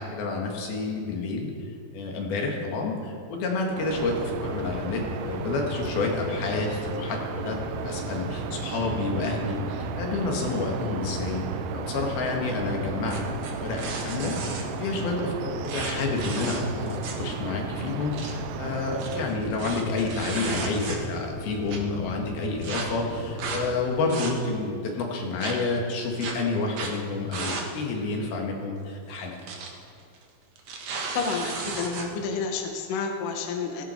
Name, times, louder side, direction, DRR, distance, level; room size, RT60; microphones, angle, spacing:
voice 1, 0.0-1.5 1.9-7.6 7.8-11.4 11.7-13.3 13.6-14.4 14.8-29.4, left 3 dB, 85° left, 0 dB, 3.8 m, -29 dB
sound 1, 3.7-19.3, right 10 dB, 85° right, 1.8 m, -37 dB
sound 2, 3.9-23.7, left 1 dB, 25° left, 2.6 m, -36 dB
sound 3, 13.1-14.6 15.7-17.3 17.6-17.7 18.0-18.3 18.9-21.2 21.7-21.8 22.6-22.9 23.4-23.6 24.0-24.6 25.4-25.5 26.2-26.3 26.7-27.0 27.3-27.7 28.0-28.1 29.2-29.7 30.0-30.2 30.6-32.1, right 4 dB, 55° right, 2.3 m, -34 dB
voice 2, 31.1-33.8, left 5 dB, 70° left, 2 dB, 2.7 m, -30 dB
16.5 x 16.0 x 4.5 m, 2.4 s
omnidirectional pair, 4.2 m